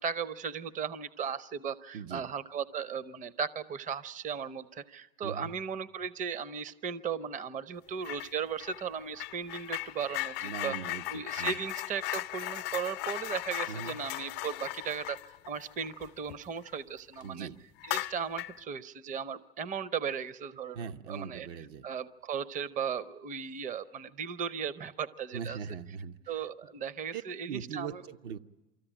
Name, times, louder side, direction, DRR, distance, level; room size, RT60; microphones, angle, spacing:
voice 1, 0.0-15.2 15.5-17.5 17.9-20.8 21.1-21.5 21.8-25.6 26.3-28.0, right 7 dB, 25° right, 16 dB, 0.7 m, -36 dB
voice 2, 1.9-2.3 5.2-5.5 10.4-11.6 13.7-14.0 17.2-17.6 20.7-21.9 25.3-26.2 27.1-28.4, right 7 dB, 70° right, 7 dB, 0.9 m, -40 dB
sound 1, 8.0-8.3 8.6-16.8 17.1-17.3 17.8-18.6, left 17 dB, 60° left, 0.6 m, -37 dB
24.0 x 14.5 x 10.0 m, 1.2 s
hypercardioid pair, 95°, 29 cm